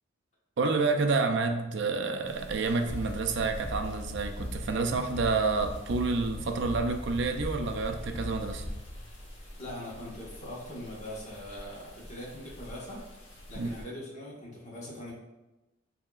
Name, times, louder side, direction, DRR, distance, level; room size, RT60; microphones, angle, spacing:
voice 1, 0.6-8.7 13.6-13.7, right 4 dB, 65° right, 6 dB, 0.4 m, -29 dB
sound 1, 2.2-13.8, equal, 80° left, 1.2 m, -45 dB
sound 2, 2.9-9.5, left 1 dB, 20° left, 0.6 m, -40 dB
voice 2, 9.6-13.0 13.5-15.1, left 1 dB, 35° left, -4 dB, 1.3 m, -41 dB
6.9 x 2.8 x 2.4 m, 1.0 s
head